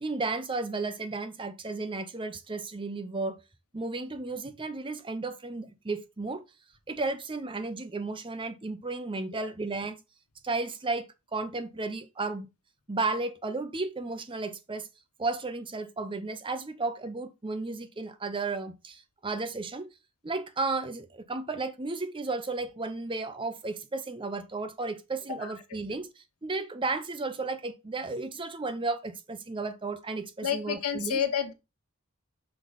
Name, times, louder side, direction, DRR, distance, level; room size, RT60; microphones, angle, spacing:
voice 1, 0.0-3.4 3.7-6.4 6.9-10.0 10.4-12.5 12.9-14.9 15.2-19.9 20.2-31.2, right 3 dB, 25° right, 0.7 m, -33 dB
voice 2, 30.4-31.5, left 8 dB, 85° left, 1.2 m, -29 dB
6.0 x 3.9 x 5.0 m
head